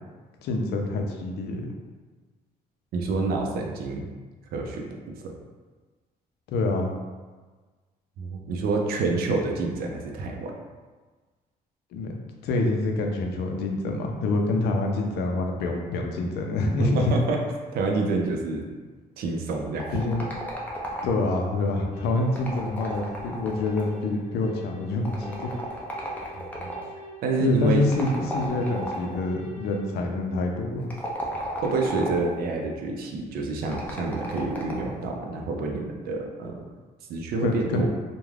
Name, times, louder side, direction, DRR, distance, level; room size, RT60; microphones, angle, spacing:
voice 1, 0.4-1.6 6.5-6.9 11.9-12.1 12.4-17.1 19.9-20.3 21.0-25.5 27.4-30.9 37.4-37.9, left 2 dB, 85° left, 2 dB, 0.4 m, -26 dB
voice 2, 2.9-4.1 4.5-4.9 5.2-5.4 8.2-10.5 16.8-17.4 17.7-18.7 19.2-20.1 26.6-26.7 27.2-27.9 28.2-28.3 31.6-36.6 37.1-37.9, right 3 dB, 70° right, 1 dB, 0.4 m, -28 dB
sound 1, 19.8-21.4 22.2-24.1 25.0-26.9 27.9-29.2 30.8-32.4 33.6-35.0, equal, 10° left, 0.4 m, -34 dB
sound 2, 21.9-29.8, left 1 dB, 45° left, 0.8 m, -46 dB
2.3 x 2.2 x 3.2 m, 1.4 s
cardioid pair, 165°, 16 cm